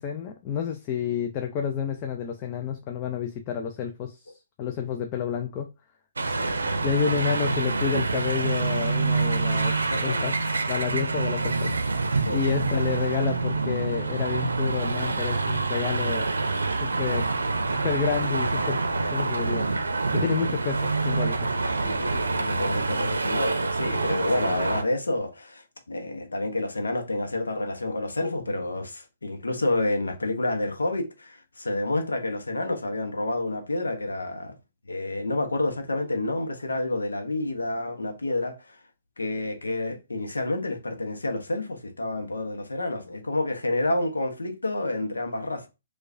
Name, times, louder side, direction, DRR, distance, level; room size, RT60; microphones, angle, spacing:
voice 1, 0.0-4.3 4.6-5.7 6.8-10.4 10.7-11.7 12.3-16.3 16.8-17.3 17.8-18.8 19.1-19.7 20.1-21.4, left 8 dB, 35° left, 0.4 m, -29 dB
sound 1, 6.2-24.8, right 3 dB, 80° right, 0.5 m, -26 dB
voice 2, 6.3-6.8 9.9-10.2 12.2-12.4 21.8-34.6 34.9-38.8 39.2-45.7, left 2 dB, 85° left, 0.7 m, -29 dB
4.6 x 2.3 x 2.5 m
figure-of-eight pair, 125°, 0 cm